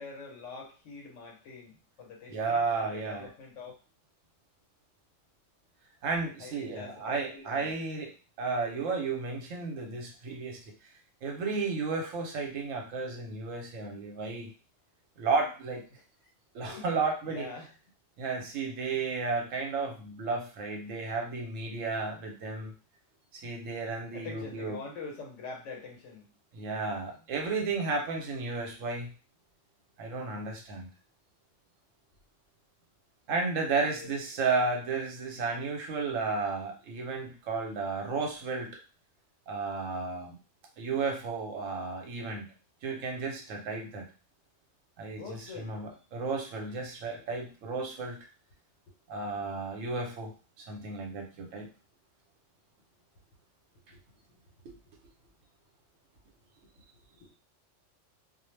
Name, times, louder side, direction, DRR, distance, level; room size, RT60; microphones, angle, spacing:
voice 1, 0.0-3.7 6.4-7.8 15.9-16.0 16.6-16.9 17.2-17.7 24.1-26.3 27.2-27.3 33.9-34.1 45.1-45.9 57.2-57.4, left 4 dB, 75° left, 1 dB, 1.1 m, -45 dB
voice 2, 2.3-3.3 6.0-8.1 8.4-10.6 11.2-14.5 15.2-15.8 16.5-17.5 18.2-22.7 23.3-24.8 26.5-29.1 30.0-30.9 33.3-38.8 39.5-40.4 40.8-42.5 42.8-44.1 45.0-48.2 49.1-51.7 54.6-54.7, right 4 dB, 85° right, 1 dB, 1.1 m, -33 dB
2.4 x 2.1 x 3.1 m, 0.35 s
omnidirectional pair, 1.3 m